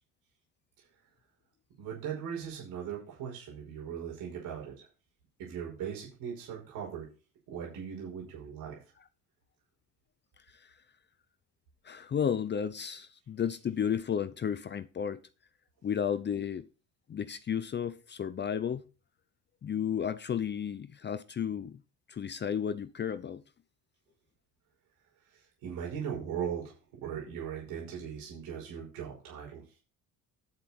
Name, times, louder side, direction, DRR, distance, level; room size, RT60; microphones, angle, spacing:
voice 1, 1.8-4.9 5.4-7.1 7.5-8.8 25.3-29.6, right 8 dB, 85° right, 5.5 m, -39 dB
voice 2, 11.8-15.2 15.8-16.7 17.1-18.8 19.6-21.8 22.1-23.4, left 8 dB, 30° left, 0.6 m, -33 dB
9.6 x 7.8 x 4.4 m
cardioid pair, 105°, 35 cm